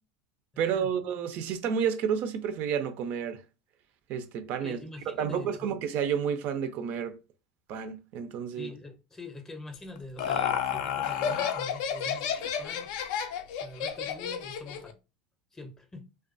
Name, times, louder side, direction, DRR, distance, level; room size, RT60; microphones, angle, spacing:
voice 1, 0.6-3.4 4.1-4.8 5.2-7.1 7.7-8.7, right 7 dB, 55° right, 0.3 m, -30 dB
voice 2, 4.6-5.8 8.5-12.9 13.6-15.0 15.5-16.1, left 2 dB, 15° left, 0.6 m, -44 dB
Laughter, 9.7-14.9, left 8 dB, 70° left, 0.3 m, -31 dB
2.2 x 2.2 x 2.5 m
supercardioid pair, 105°, 4 cm